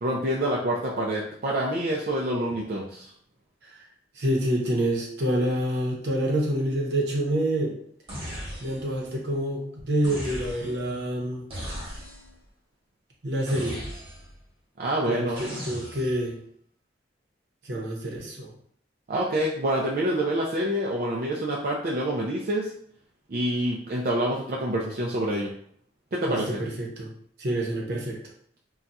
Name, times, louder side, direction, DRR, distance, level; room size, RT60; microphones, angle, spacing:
voice 1, 0.0-3.1 14.8-15.4 19.1-22.7 23.3-25.5 26.1-26.6, right 1 dB, 50° right, -3 dB, 0.4 m, -27 dB
voice 2, 4.1-7.8 8.6-11.4 13.2-13.8 15.1-16.4 17.6-18.5 26.3-27.1 27.4-28.2, right 1 dB, 70° right, -1 dB, 0.8 m, -27 dB
sound 1, 8.1-9.0 10.0-10.9 11.5-12.4 13.5-14.4 15.4-16.3, equal, 30° right, 1.1 m, -37 dB
2.3 x 2.3 x 4.0 m, 0.63 s
head